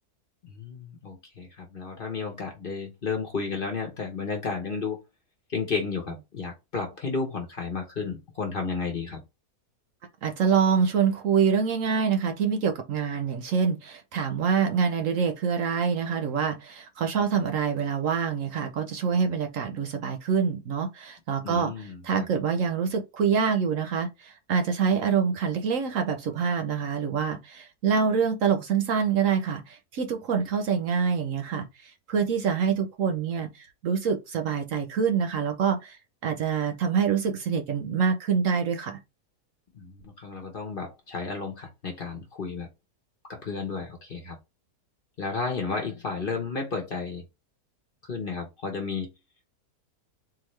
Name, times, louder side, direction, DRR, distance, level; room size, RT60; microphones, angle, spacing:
voice 1, 0.4-5.0 5.5-9.2 21.4-22.3 39.7-42.7 43.3-44.4 45.2-47.2 48.1-49.1, left 4 dB, 40° left, 1.0 m, -32 dB
voice 2, 10.2-36.0 36.2-39.0, right 6 dB, 65° right, 1.0 m, -26 dB
3.9 x 2.7 x 3.1 m
omnidirectional pair, 1.6 m